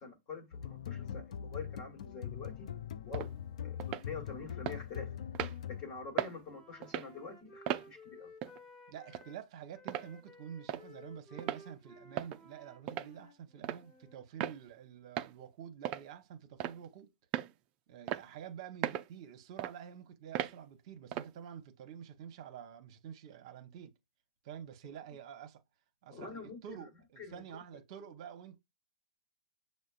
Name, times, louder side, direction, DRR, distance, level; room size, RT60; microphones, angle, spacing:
voice 1, 0.0-2.7 3.0-3.3 3.6-5.1 5.7-8.3 26.1-26.8 27.2-27.4, left 4 dB, 30° left, 1.4 m, -46 dB
sound 1, 0.5-6.2, left 9 dB, 60° left, 0.4 m, -42 dB
sound 2, 3.1-3.3 3.8-4.1 4.7-4.8 5.3-5.6 6.2-6.4 6.8-7.1 7.7-7.9 8.4-8.6 9.1-9.2 9.9-10.1 10.7-10.8 11.4-11.6 12.2-12.4 12.9-13.1 13.6-13.8 14.4-14.6 15.2-15.3 15.8-16.1 16.6-16.9 17.3-17.5 18.1-18.2 18.8-19.1 19.6-19.7 20.3-20.5 21.1-21.3, right 12 dB, 30° right, 0.4 m, -36 dB
Wind instrument woodwind instrument, 5.6-9.4 9.7-14.2, left 2 dB, 10° left, 1.3 m, -57 dB
voice 2, 8.9-17.1 17.9-23.9 24.4-25.6 26.0-28.6, right 9 dB, 45° right, 0.8 m, -48 dB
6.2 x 2.1 x 2.4 m
hypercardioid pair, 125°, 4 cm